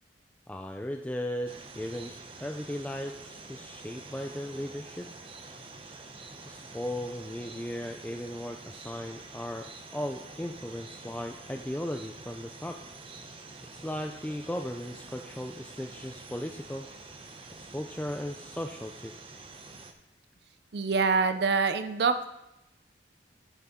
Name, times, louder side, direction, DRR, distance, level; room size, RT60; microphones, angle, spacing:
voice 1, 0.5-2.1 2.4-5.1 6.5-12.8 13.7-16.9 17.6-19.1, left 1 dB, 10° left, 4 dB, 0.4 m, -37 dB
sound 1, 1.5-19.9, right 3 dB, 30° right, 0.7 m, -47 dB
voice 2, 20.7-22.3, right 4 dB, 65° right, 10 dB, 0.5 m, -25 dB
13.5 x 7.0 x 3.7 m, 0.91 s
head